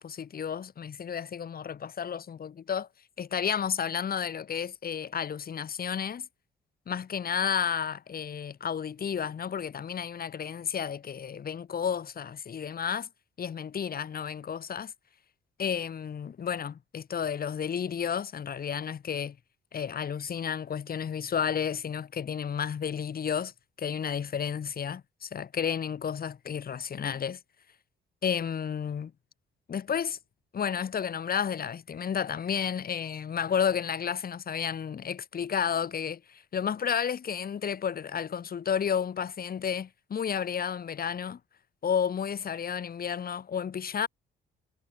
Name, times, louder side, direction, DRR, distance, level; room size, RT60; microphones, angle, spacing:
voice 1, 0.0-2.9 3.2-6.3 6.9-13.1 13.4-14.9 15.6-19.4 19.7-23.5 23.8-27.4 28.2-29.1 29.7-30.2 30.5-41.4 41.8-44.1, left 7 dB, 50° left, 2.5 m, -32 dB
cardioid pair, 90°, 20 cm